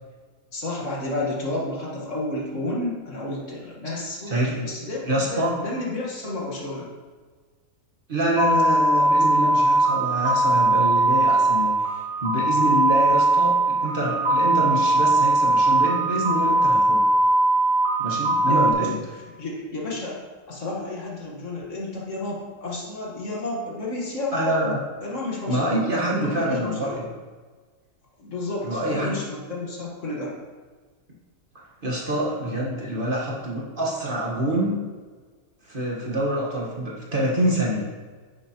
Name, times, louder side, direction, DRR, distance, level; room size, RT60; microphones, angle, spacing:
voice 1, 0.5-6.9 18.5-18.9 19.4-20.2 20.5-24.5 25.0-27.1 28.2-30.3, left 2 dB, 60° left, -3 dB, 1.8 m, -31 dB
voice 2, 5.0-5.6 8.1-11.9 12.2-17.0 18.0-19.0 24.3-24.8 25.5-27.0 28.6-29.2 31.5-34.8 35.6-37.9, right 1 dB, 40° right, -4 dB, 1.5 m, -26 dB
sound 1, 8.4-18.7, right 2 dB, 40° left, 2.0 m, -20 dB
9.6 x 7.1 x 3.0 m, 1.4 s
omnidirectional pair, 1.5 m